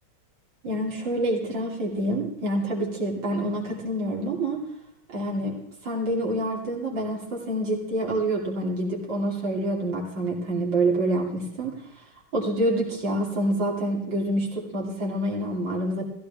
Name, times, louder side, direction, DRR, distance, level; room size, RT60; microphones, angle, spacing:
voice 1, 0.6-4.6 5.1-5.6 5.8-11.8 12.3-16.0, right 1 dB, 65° right, -2 dB, 3.6 m, -27 dB
16.0 x 15.5 x 3.5 m, 0.75 s
omnidirectional pair, 2.2 m